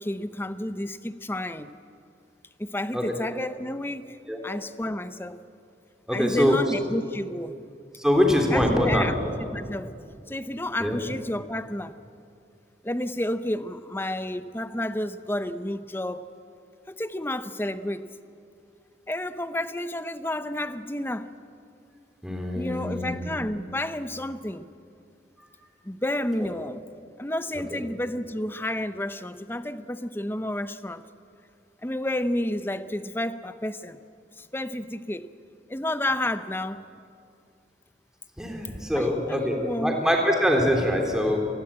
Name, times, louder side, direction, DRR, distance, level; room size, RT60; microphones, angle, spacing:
voice 1, 0.0-1.7 2.6-4.2 4.4-5.4 6.1-7.5 8.5-9.1 9.4-9.9 10.3-12.0 12.8-16.3 16.9-18.1 19.1-21.3 22.5-24.7 25.8-26.8 27.2-31.0 31.8-34.0 34.4-35.3 35.7-36.8 38.9-40.0, left 1 dB, 10° left, 0.7 m, -30 dB
voice 2, 6.1-6.6 8.0-9.1 10.8-11.0 22.2-23.2 26.4-26.5 27.7-27.8 38.4-41.4, equal, 5° right, 3.5 m, -23 dB
28.5 x 20.5 x 8.8 m
head